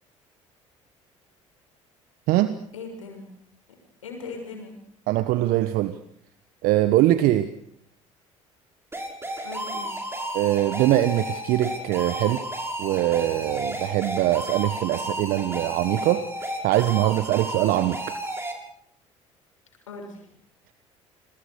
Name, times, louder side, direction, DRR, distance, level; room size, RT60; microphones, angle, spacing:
voice 1, 2.7-3.3 4.0-4.8 9.4-9.9 19.9-20.3, left 4 dB, 85° left, 3 dB, 6.6 m, -38 dB
voice 2, 5.1-5.9 6.6-7.5 10.3-12.4 12.8-16.2 16.6-18.1, right 15 dB, 60° right, 12 dB, 1.3 m, -22 dB
sound 1, 8.9-18.5, right 1 dB, 15° right, 7.0 m, -32 dB
29.5 x 22.0 x 6.5 m, 0.67 s
figure-of-eight pair, 55°, 16 cm